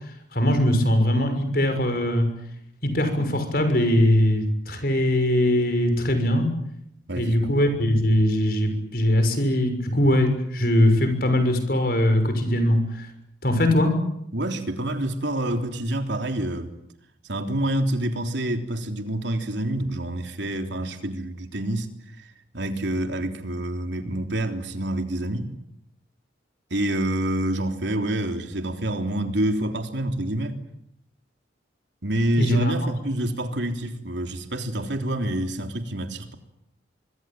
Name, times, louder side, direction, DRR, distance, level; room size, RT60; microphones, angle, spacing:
voice 1, 0.3-2.3 2.8-6.5 7.2-13.1 13.4-13.9 32.4-32.7, left 1 dB, 50° left, 6.4 m, -21 dB
voice 2, 7.1-7.5 14.3-16.7 17.3-21.9 22.2-22.3 22.5-25.5 26.7-30.6 32.0-36.4, right 1 dB, 70° right, 3.5 m, -27 dB
25.0 x 25.0 x 9.1 m
head